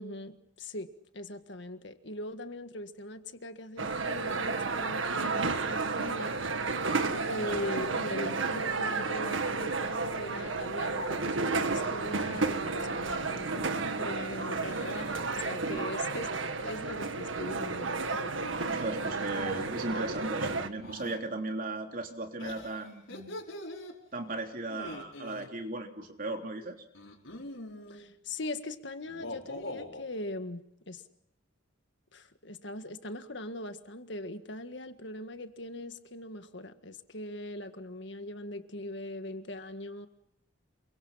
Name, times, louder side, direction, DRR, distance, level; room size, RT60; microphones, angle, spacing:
voice 1, 0.0-6.4 7.3-18.1 27.9-31.0 32.1-40.1, left 1 dB, 65° left, 8 dB, 1.8 m, -41 dB
sound 1, 3.8-20.7, right 3 dB, 80° right, 1.7 m, -32 dB
sound 2, 11.7-12.1 12.4-12.9 14.7-15.9 18.0-19.4 20.8-21.2 22.4-23.9 24.7-25.5 26.9-28.0 29.0-30.0, left 1 dB, 85° left, 5.1 m, -44 dB
voice 2, 18.7-23.3 24.1-26.8, right 2 dB, 45° right, 3 dB, 3.5 m, -36 dB
28.0 x 24.0 x 5.8 m, 0.78 s
head